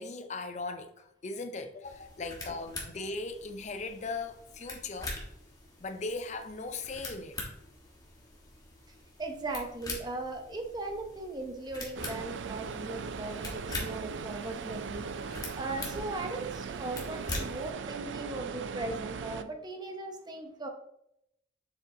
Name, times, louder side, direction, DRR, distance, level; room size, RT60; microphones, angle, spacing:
voice 1, 0.0-5.1 5.8-7.4, left 3 dB, 40° left, 0.5 m, -38 dB
sound 1, 1.8-17.7, left 2 dB, 20° left, 1.3 m, -44 dB
voice 2, 9.2-15.0 15.5-20.7, right 2 dB, 25° right, 0.7 m, -38 dB
sound 2, 11.9-19.4, right 5 dB, 80° right, 0.4 m, -39 dB
7.0 x 5.0 x 2.7 m
head